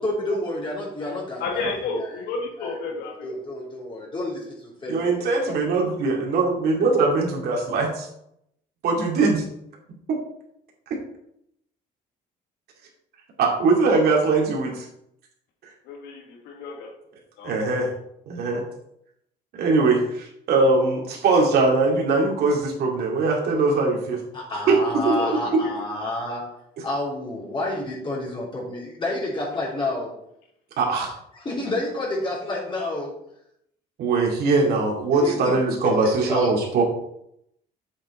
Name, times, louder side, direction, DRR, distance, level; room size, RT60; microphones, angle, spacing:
voice 1, 0.0-2.2 2.6-2.8 3.2-5.5 24.3-26.5 26.8-30.1 31.3-33.1 35.2-35.5 35.8-36.5, left 1 dB, 30° left, -5 dB, 3.4 m, -29 dB
voice 2, 1.4-3.3 15.9-16.9 17.4-17.5 25.2-25.8, left 3 dB, 85° left, 3 dB, 2.1 m, -31 dB
voice 3, 4.9-7.9 8.8-9.4 13.4-14.9 17.4-17.9 18.3-18.6 19.5-24.2 24.7-24.8 25.0-25.2 25.5-25.6 26.8-26.9 30.8-31.1 34.0-36.8, right 3 dB, 70° right, -1 dB, 2.5 m, -21 dB
8.1 x 7.5 x 4.3 m, 0.76 s
cardioid pair, 110°, 17 cm